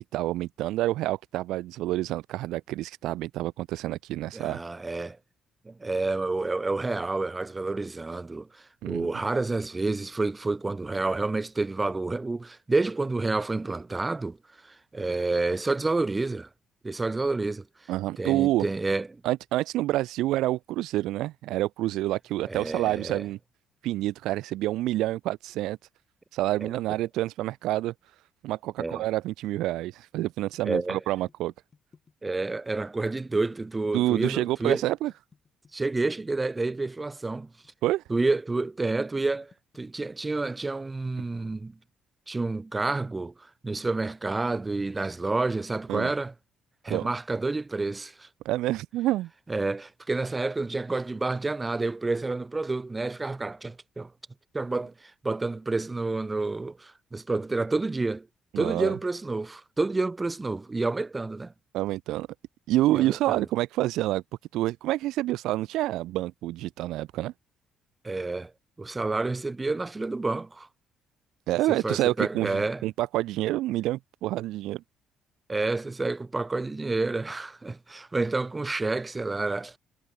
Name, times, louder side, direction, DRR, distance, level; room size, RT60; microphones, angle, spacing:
voice 1, 0.1-4.6 8.8-9.1 17.9-18.6 19.2-23.4 23.8-25.8 26.3-27.9 28.4-31.5 33.9-35.1 37.8-38.0 45.9-46.1 46.9-47.1 48.4-49.3 58.5-58.9 61.7-62.3 62.7-64.2 64.5-67.3 71.5-74.8, right 15 dB, 80° right, 1.0 m, -28 dB
voice 2, 4.3-5.2 5.7-14.4 14.6-16.5 16.8-17.6 18.2-19.2 22.5-23.2 26.6-26.7 28.8-29.0 30.6-31.0 32.2-34.8 35.7-37.5 38.1-41.8 42.3-43.3 43.6-46.3 46.8-48.3 49.5-54.1 54.5-58.3 58.6-61.5 62.9-63.4 68.0-68.5 68.8-70.7 71.7-72.8 75.5-79.8, right 3 dB, 20° right, 2.0 m, -29 dB
sound 1, 29.9-37.9 38.3-40.0, left 5 dB, 35° left, 6.6 m, -57 dB
supercardioid pair, 70°, 0 cm